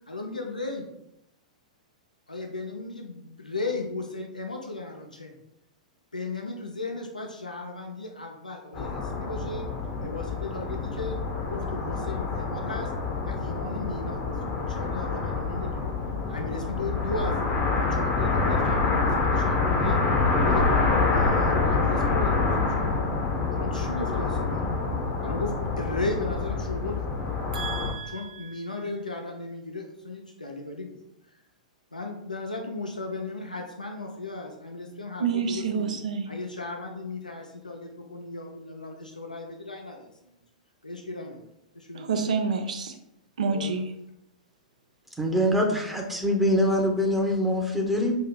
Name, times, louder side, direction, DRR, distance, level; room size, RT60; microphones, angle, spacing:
voice 1, 0.1-0.9 2.3-5.4 6.1-9.7 10.0-11.2 11.5-12.9 13.2-14.4 14.7-15.9 16.3-17.4 17.8-20.0 20.4-20.6 21.1-22.8 23.5-24.8 25.2-27.1 28.1-31.0 31.9-35.9 36.3-40.4 40.8-41.5 41.7-42.1 43.4-43.7, left 2 dB, 90° left, 2 dB, 0.5 m, -36 dB
sound 1, 8.7-27.9, left 4 dB, 30° left, 0.7 m, -26 dB
voice 2, 27.5-28.6 35.2-36.3 41.9-43.0 43.4-43.9, right 5 dB, 65° right, 5 dB, 0.6 m, -28 dB
voice 3, 45.2-48.1, equal, ahead, 0 dB, 0.8 m, -24 dB
5.5 x 2.7 x 2.2 m, 0.81 s
figure-of-eight pair, 105°, 4 cm